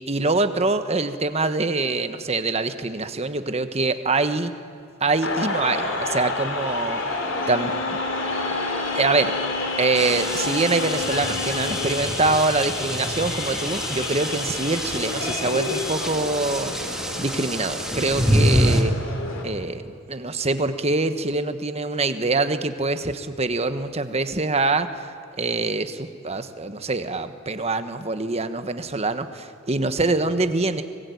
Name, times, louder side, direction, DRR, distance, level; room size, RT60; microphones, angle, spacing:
voice 1, 0.1-4.5 5.0-7.2 7.5-8.0 8.9-9.3 9.8-16.7 17.2-18.9 19.4-19.8 20.1-25.1 25.4-29.3 29.7-30.8, right 3 dB, 30° right, 9 dB, 1.3 m, -24 dB
sound 1, 5.2-19.4, left 3 dB, 75° left, 3.8 m, -29 dB
sound 2, 7.2-12.1, left 3 dB, 35° left, 3.3 m, -35 dB
sound 3, 10.0-18.8, equal, 5° right, 2.2 m, -27 dB
25.0 x 20.5 x 9.4 m, 2.4 s
head